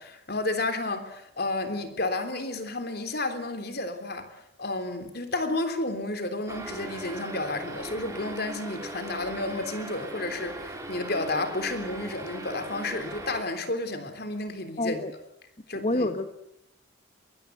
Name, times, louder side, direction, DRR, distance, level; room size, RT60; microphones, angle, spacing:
voice 1, 0.0-4.3 4.6-15.0 15.7-16.1, left 2 dB, 50° left, 8 dB, 3.4 m, -31 dB
sound 1, 6.5-13.4, right 1 dB, 15° right, 3.9 m, -39 dB
voice 2, 14.8-15.1 15.7-16.3, left 2 dB, 35° left, 8 dB, 1.2 m, -27 dB
23.0 x 21.5 x 8.1 m, 0.80 s
head